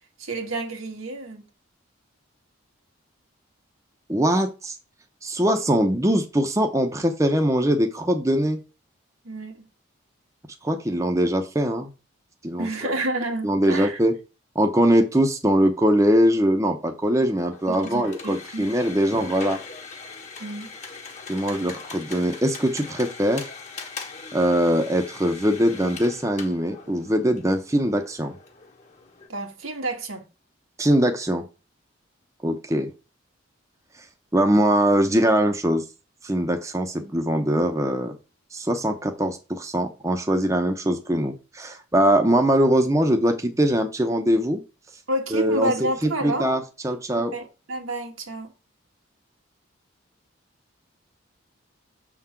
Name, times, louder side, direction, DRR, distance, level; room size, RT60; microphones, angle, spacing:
voice 1, 0.2-1.4 9.2-9.7 12.6-14.0 17.7-18.6 20.4-20.7 29.3-30.2 37.0-37.1 45.1-46.5 47.1-48.5, right 1 dB, 90° right, 1.7 m, -30 dB
voice 2, 4.1-4.7 5.2-8.6 10.6-11.9 12.4-12.9 13.4-14.1 14.5-19.6 21.3-23.5 24.3-28.4 30.8-31.4 32.4-32.9 34.3-35.8 36.2-38.1 38.5-44.6 45.3-45.7 46.0-47.3, equal, 15° right, 0.7 m, -22 dB
sound 1, 17.5-29.3, left 4 dB, 35° left, 1.2 m, -41 dB
7.0 x 3.8 x 5.7 m
head